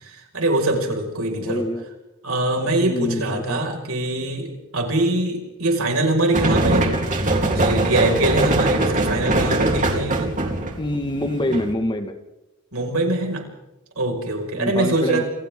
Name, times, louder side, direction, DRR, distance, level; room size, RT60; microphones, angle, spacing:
voice 1, 0.3-1.6 2.2-6.9 7.5-10.3 12.7-13.4 14.0-15.2, right 2 dB, 70° right, 2 dB, 5.4 m, -23 dB
voice 2, 1.4-1.8 2.7-3.6 10.8-12.2 14.5-15.2, equal, 20° left, 6 dB, 1.7 m, -25 dB
sound 1, 6.3-11.7, right 2 dB, 35° right, 3.3 m, -21 dB
29.0 x 27.5 x 3.7 m, 0.97 s
head